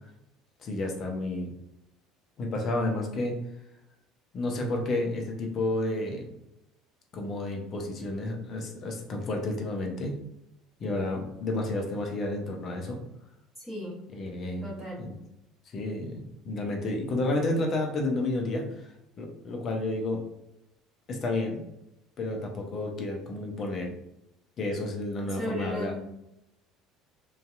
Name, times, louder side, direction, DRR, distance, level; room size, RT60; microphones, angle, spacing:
voice 1, 0.6-1.5 2.4-3.4 4.3-6.3 7.1-10.1 10.8-13.0 14.1-14.7 15.0-15.1 15.7-18.9 19.2-20.2 21.1-21.6 22.2-23.9 24.6-25.9, left 2 dB, 45° left, 2 dB, 0.6 m, -31 dB
voice 2, 13.6-13.9 14.6-15.0 25.4-26.0, left 1 dB, ahead, -9 dB, 1.0 m, -35 dB
2.6 x 2.3 x 2.3 m, 0.84 s
figure-of-eight pair, 65°, 0 cm